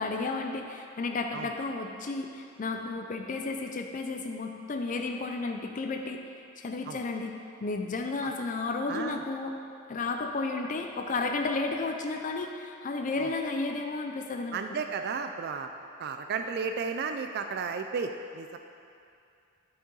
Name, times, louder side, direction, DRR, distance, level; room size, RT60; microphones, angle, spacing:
voice 1, 0.0-6.2 6.6-7.3 7.6-9.5 9.9-14.6, left 3 dB, 40° left, 3 dB, 0.4 m, -32 dB
voice 2, 8.9-9.2 13.2-13.3 14.5-15.7 16.0-18.6, right 5 dB, 50° right, 6 dB, 0.4 m, -33 dB
9.6 x 6.4 x 3.9 m, 2.5 s
head